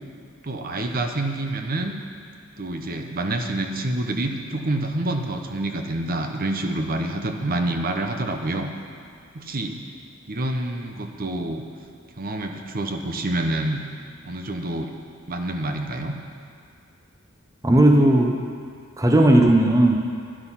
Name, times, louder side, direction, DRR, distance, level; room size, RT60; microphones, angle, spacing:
voice 1, 0.4-2.0 2.6-8.7 9.3-9.8 10.3-11.6 12.2-13.8 14.2-14.9 15.3-16.2, right 1 dB, 45° right, 4 dB, 0.9 m, -27 dB
voice 2, 17.6-18.4 19.0-20.0, right 1 dB, 15° right, 2 dB, 0.8 m, -16 dB
12.5 x 10.5 x 5.7 m, 2.3 s
head